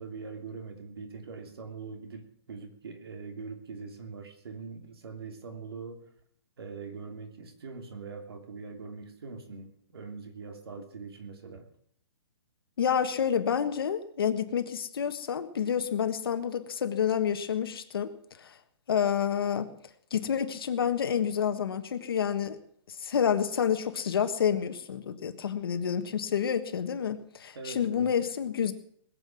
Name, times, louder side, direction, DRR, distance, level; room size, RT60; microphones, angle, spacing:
voice 1, 0.0-6.1 6.6-11.6 27.5-28.1, right 4 dB, 55° right, 5 dB, 3.1 m, -42 dB
voice 2, 12.8-18.1 18.4-18.6 18.9-19.7 20.1-22.6 22.9-28.7, left 8 dB, 50° left, 9 dB, 1.5 m, -29 dB
21.0 x 7.8 x 7.6 m, 0.64 s
hypercardioid pair, 180°, 15 cm